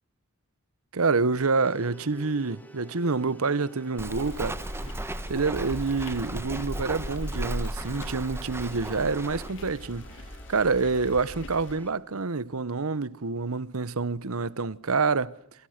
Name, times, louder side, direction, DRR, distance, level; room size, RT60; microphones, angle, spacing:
voice 1, 0.9-4.6 5.3-10.1 10.5-15.3, right 4 dB, 80° right, 1.0 m, -27 dB
sound 1, 1.6-11.9, equal, 10° left, 3.3 m, -51 dB
Walk footsteps, 4.0-9.5, right 1 dB, 10° right, 1.3 m, -35 dB
sound 2, 4.1-11.7, left 1 dB, 60° left, 3.3 m, -42 dB
29.0 x 25.0 x 6.6 m
head